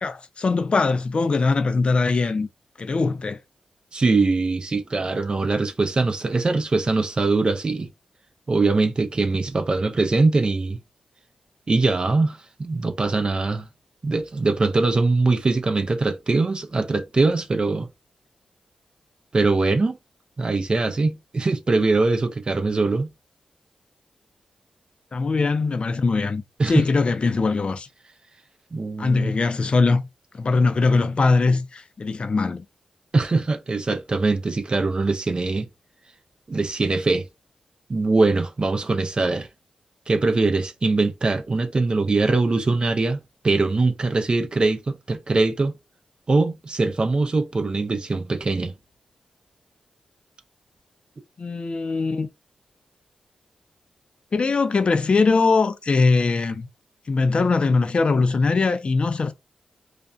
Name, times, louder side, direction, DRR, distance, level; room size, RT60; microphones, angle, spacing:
voice 1, 0.0-2.5 2.8-3.4 25.1-27.9 29.0-30.0 30.3-32.7 51.4-52.3 54.3-56.7 57.1-59.3, left 4 dB, 50° left, 0.4 m, -21 dB
voice 2, 3.9-7.9 8.5-10.8 11.7-13.7 14.0-17.9 19.3-20.0 20.4-23.1 26.6-26.7 28.7-29.3 33.1-35.7 36.5-37.3 37.9-39.5 40.1-45.7 46.3-48.7, right 3 dB, 40° right, 0.4 m, -22 dB
2.4 x 2.1 x 2.5 m
cardioid pair, 45°, 2 cm